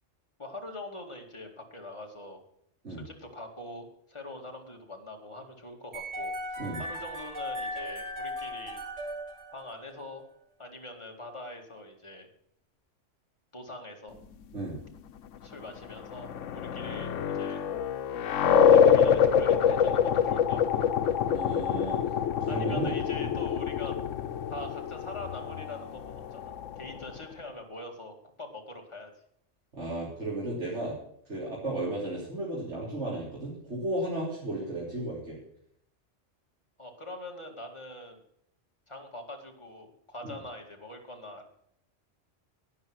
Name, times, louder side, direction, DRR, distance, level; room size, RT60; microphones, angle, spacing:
voice 1, 0.4-2.4 2.9-8.8 9.5-10.3 10.6-12.3 13.5-14.2 15.4-17.6 18.6-20.9 22.5-23.9 24.5-29.1 36.8-38.2 38.9-41.5, left 1 dB, 25° left, 1 dB, 2.3 m, -43 dB
sound 1, 5.9-10.0, equal, 85° right, 3.2 m, -37 dB
sound 2, 15.8-27.2, left 8 dB, 80° left, 1.1 m, -25 dB
voice 2, 21.2-22.0 22.4-23.3 29.7-30.9 31.3-35.4 40.2-40.3, right 1 dB, 65° right, -6 dB, 3.9 m, -34 dB
12.0 x 9.7 x 6.3 m, 0.71 s
omnidirectional pair, 1.3 m